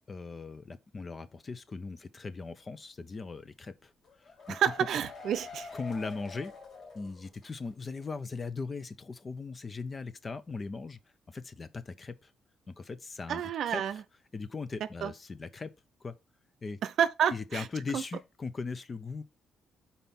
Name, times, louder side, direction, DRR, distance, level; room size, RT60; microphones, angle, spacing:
voice 1, 0.1-3.9 4.2-4.6 5.7-6.5 6.9-11.0 11.3-12.3 12.7-14.0 14.3-15.7 16.0-16.1 16.6-16.8 17.3-19.2, left 4 dB, 35° left, 0.7 m, -39 dB
sound 1, 4.0-7.7 8.0-8.1 8.4-8.5, left 4 dB, 50° left, 2.3 m, -47 dB
voice 2, 4.5-5.7 13.3-14.0 15.0-15.1 16.8-17.7 17.9-18.0, right 9 dB, 70° right, 0.6 m, -29 dB
5.3 x 4.3 x 5.8 m
cardioid pair, 90°, 0 cm